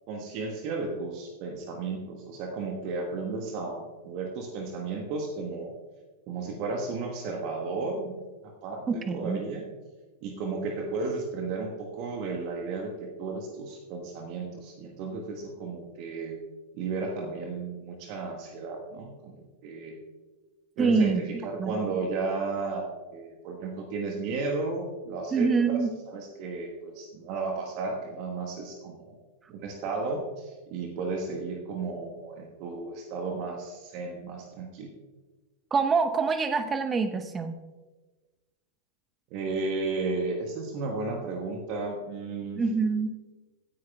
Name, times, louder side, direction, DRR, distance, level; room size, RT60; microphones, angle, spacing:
voice 1, 0.1-5.7 6.3-9.7 10.2-16.4 16.7-20.0 20.8-29.2 29.5-34.9 39.3-42.6, right 3 dB, 45° right, 2 dB, 1.3 m, -34 dB
voice 2, 8.9-9.4 20.8-21.2 21.6-21.8 25.3-25.9 35.7-37.6 42.5-43.1, right 5 dB, 20° right, 9 dB, 0.8 m, -25 dB
16.5 x 9.7 x 2.3 m, 1.2 s
figure-of-eight pair, 90°, 0 cm